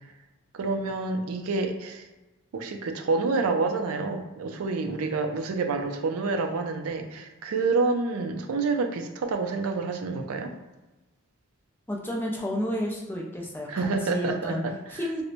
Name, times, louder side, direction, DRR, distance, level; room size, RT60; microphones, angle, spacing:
voice 1, 0.5-2.1 2.5-10.5 13.7-15.0, right 3 dB, 80° right, 5 dB, 0.4 m, -28 dB
voice 2, 11.9-14.6 14.9-15.2, equal, 10° left, -2 dB, 0.4 m, -31 dB
4.3 x 2.0 x 2.5 m, 1.1 s
head